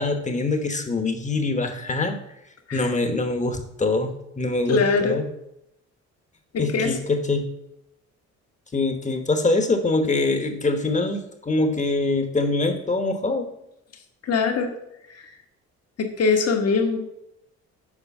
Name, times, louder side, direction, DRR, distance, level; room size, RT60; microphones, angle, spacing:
voice 1, 0.0-2.2 2.7-5.2 6.6-7.4 8.7-13.5, left 2 dB, 25° left, 6 dB, 1.1 m, -24 dB
voice 2, 4.7-5.2 6.5-6.9 14.2-14.7 15.1-15.2 16.0-17.0, left 4 dB, 55° left, 4 dB, 1.4 m, -22 dB
7.3 x 4.9 x 5.4 m, 0.83 s
cardioid pair, 90°, 30 cm